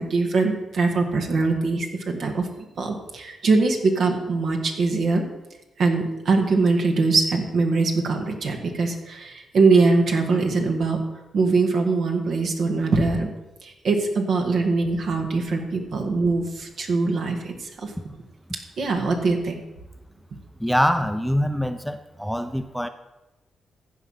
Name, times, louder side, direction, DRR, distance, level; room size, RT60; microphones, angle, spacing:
voice 1, 0.0-2.5 2.8-5.2 5.8-11.0 11.3-13.3 13.6-17.9 18.8-19.6, right 3 dB, 70° right, 2 dB, 1.8 m, -22 dB
voice 2, 20.6-22.9, equal, ahead, 9 dB, 0.7 m, -24 dB
15.0 x 5.0 x 5.7 m, 1.0 s
supercardioid pair, 50°, 0 cm